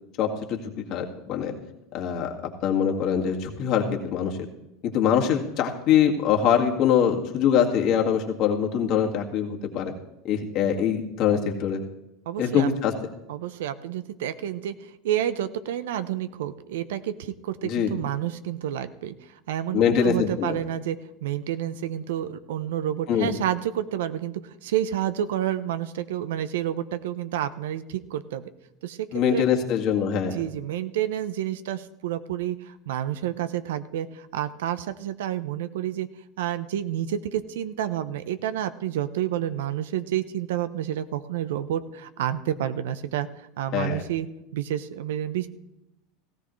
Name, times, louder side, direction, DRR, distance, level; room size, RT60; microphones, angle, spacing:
voice 1, 0.2-0.6 0.9-1.5 1.9-2.3 2.6-4.3 4.8-9.9 10.2-11.8 12.4-12.9 17.6-17.9 19.7-20.6 23.1-23.3 29.1-30.4 43.7-44.0, left 8 dB, 55° left, 1 dB, 2.0 m, -23 dB
voice 2, 12.3-12.7 13.3-28.4 28.8-29.4 30.3-36.1 36.4-43.3 43.6-44.3 44.5-45.5, right 11 dB, 75° right, 13 dB, 0.8 m, -29 dB
17.0 x 15.5 x 3.2 m, 0.89 s
hypercardioid pair, 90°, 0 cm